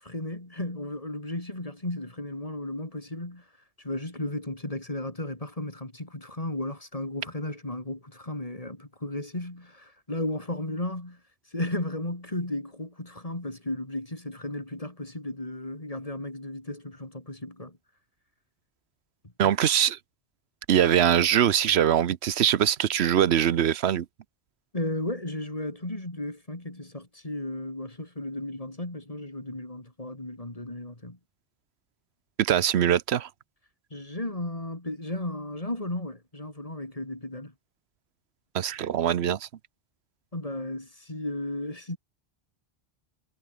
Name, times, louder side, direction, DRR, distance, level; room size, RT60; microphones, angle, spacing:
voice 1, 0.0-3.4 3.8-11.2 11.5-17.8 24.7-31.2 33.9-37.5 40.3-42.0, left 1 dB, 35° left, 3.6 m, -34 dB
voice 2, 19.4-20.0 20.7-24.1 32.4-33.3 38.5-39.5, right 10 dB, 90° right, 1.0 m, -22 dB
omnidirectional pair, 1.1 m